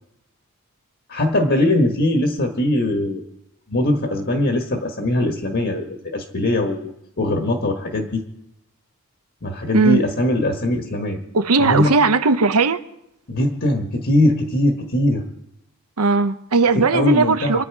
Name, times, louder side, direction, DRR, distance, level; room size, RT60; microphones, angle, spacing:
voice 1, 1.1-3.2 3.7-8.2 9.4-11.2 11.6-11.9 13.3-15.2 16.7-17.6, left 1 dB, 50° left, 1.4 m, -21 dB
voice 2, 11.3-12.8 16.0-17.6, right 4 dB, 85° right, 0.9 m, -17 dB
26.5 x 9.3 x 4.8 m
head